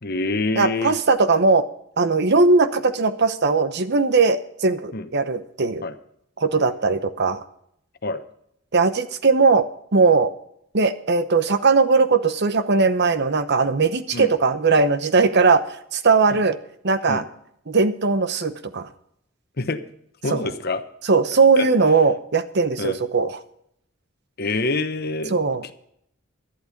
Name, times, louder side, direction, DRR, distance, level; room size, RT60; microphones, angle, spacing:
voice 1, 0.0-1.0 4.9-5.1 5.8-5.9 8.0-8.2 14.1-14.3 16.3-16.4 17.1-17.3 19.6-19.8 20.2-20.8 21.6-21.7 22.8-23.0 24.4-25.4 25.6-25.7, left 2 dB, 50° left, 9 dB, 1.0 m, -26 dB
voice 2, 0.6-1.6 2.0-5.8 6.4-7.4 8.7-9.6 9.9-10.3 10.7-15.6 15.9-16.6 16.8-17.2 17.7-18.9 20.3-20.4 21.1-23.4 25.3-25.6, right 4 dB, 55° right, 11 dB, 0.9 m, -19 dB
12.0 x 11.5 x 5.2 m, 0.71 s
head